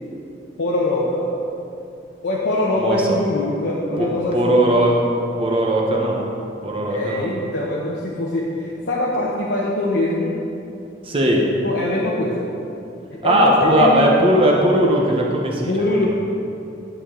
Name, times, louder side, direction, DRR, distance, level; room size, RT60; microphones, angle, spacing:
voice 1, 0.6-1.3 2.2-4.6 6.9-10.5 11.6-12.5 13.1-14.2 15.7-16.1, left 1 dB, 65° left, -4 dB, 0.9 m, -23 dB
voice 2, 4.0-5.0 5.4-6.2 6.6-7.3 11.0-11.4 13.2-16.0, right 1 dB, 30° right, -1 dB, 0.9 m, -18 dB
11.0 x 7.0 x 3.8 m, 2.8 s
head